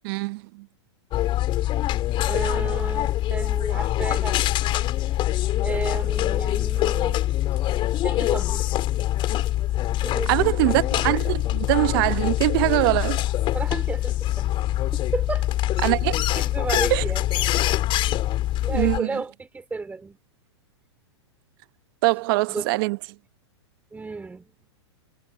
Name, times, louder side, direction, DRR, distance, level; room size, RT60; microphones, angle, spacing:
voice 1, 0.0-0.6 10.3-13.2 15.8-16.2 16.9-17.0 18.7-19.2 22.0-23.0, right 23 dB, 50° right, 1.0 m, -23 dB
sound 1, 1.1-19.0, left 14 dB, 35° left, 4.7 m, -24 dB
voice 2, 2.2-4.4 5.6-7.2 8.0-8.6 10.0-10.5 13.5-14.5 14.9-15.5 16.3-17.2 18.6-20.2 22.5-22.7 23.9-24.4, right 4 dB, 10° right, 3.2 m, -32 dB
hypercardioid pair, 115°, 15 cm